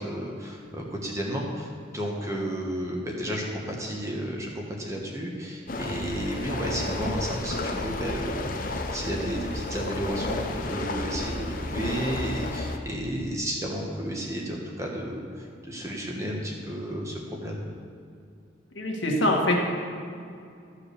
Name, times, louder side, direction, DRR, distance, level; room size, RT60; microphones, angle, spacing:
voice 1, 0.0-17.6, equal, 15° right, -1 dB, 1.3 m, -32 dB
sound 1, 5.7-12.8, left 2 dB, 45° left, 0.7 m, -32 dB
voice 2, 18.8-19.6, left 1 dB, 75° left, -1 dB, 1.7 m, -23 dB
13.0 x 4.8 x 6.8 m, 2.4 s
head